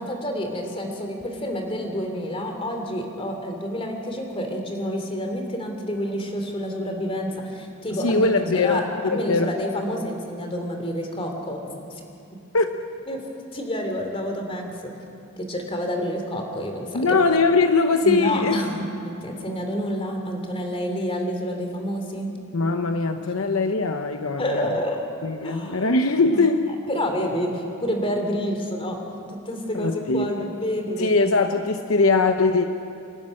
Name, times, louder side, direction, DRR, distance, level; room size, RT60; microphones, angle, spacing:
voice 1, 0.0-8.3 8.5-11.6 13.1-13.2 13.5-14.9 15.4-17.1 18.0-22.3 24.4-25.0 25.4-25.9 26.3-26.5 26.9-29.0 29.3-31.3, equal, 25° left, 3 dB, 2.9 m, -28 dB
voice 2, 8.0-9.6 12.5-12.7 16.9-18.6 22.5-24.7 25.2-26.7 29.7-30.3 31.0-32.7, left 3 dB, 70° left, 6 dB, 0.9 m, -21 dB
27.5 x 12.0 x 9.9 m, 2.6 s
head